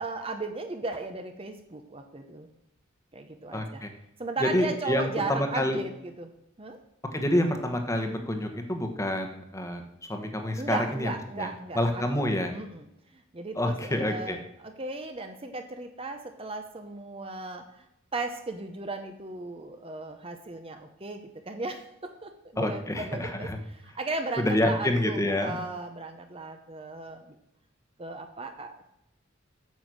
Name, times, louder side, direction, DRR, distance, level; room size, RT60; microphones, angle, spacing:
voice 1, 0.0-2.5 3.1-3.8 4.2-6.3 6.6-6.8 10.6-12.2 12.5-12.9 13.1-17.9 18.1-27.4 28.0-28.9, right 3 dB, 30° right, 6 dB, 0.7 m, -36 dB
voice 2, 3.5-3.9 4.4-5.8 7.1-9.8 10.1-11.1 11.4-11.5 11.7-12.5 13.6-14.4 22.6-23.6 24.4-25.6, left 1 dB, 15° left, 5 dB, 1.1 m, -27 dB
9.2 x 7.0 x 6.2 m, 0.82 s
head